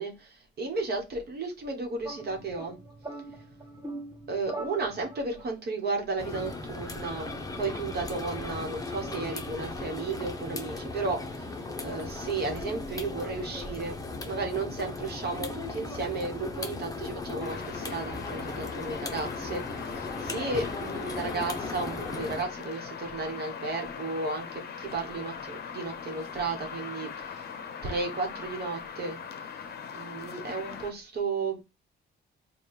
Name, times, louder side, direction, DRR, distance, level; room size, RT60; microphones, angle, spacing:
voice 1, 0.0-2.8 4.3-7.3 7.6-14.0 14.3-27.5 27.8-29.2 29.9-31.6, right 3 dB, 55° right, 1.1 m, -34 dB
sound 1, 2.0-5.5, right 2 dB, 20° right, 0.9 m, -42 dB
sound 2, 6.2-22.4, left 3 dB, 20° left, 0.7 m, -37 dB
sound 3, 17.4-30.9, left 7 dB, 55° left, 0.6 m, -40 dB
3.4 x 2.3 x 4.3 m
cardioid pair, 90°, 20 cm